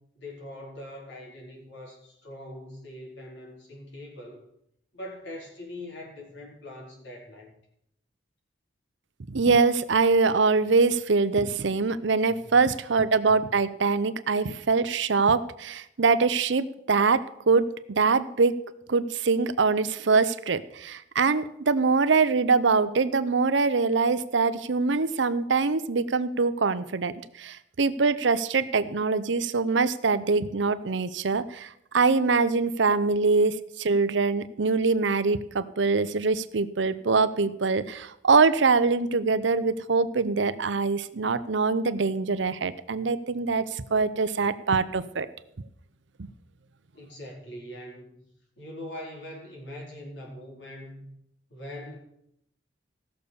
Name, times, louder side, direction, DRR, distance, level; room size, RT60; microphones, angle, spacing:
voice 1, 0.0-4.5 4.9-7.5 12.3-12.5 46.9-48.3 48.6-51.1 51.5-52.0, left 1 dB, 65° left, -1 dB, 4.3 m, -42 dB
voice 2, 9.3-18.6 18.9-45.3, right 4 dB, 70° right, 14 dB, 0.7 m, -24 dB
16.0 x 6.7 x 7.0 m, 0.76 s
head